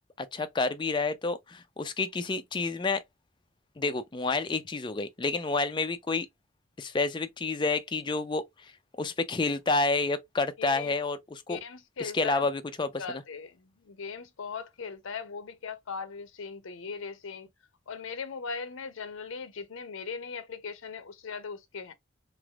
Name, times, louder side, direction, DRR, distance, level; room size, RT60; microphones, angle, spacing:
voice 1, 0.2-3.0 3.8-6.3 6.8-8.7 9.0-11.6 12.0-13.0, left 3 dB, 20° left, 0.4 m, -29 dB
voice 2, 10.6-10.9 11.5-12.5 13.0-17.5 17.9-21.9, left 5 dB, 80° left, 0.6 m, -39 dB
3.3 x 3.0 x 2.3 m
head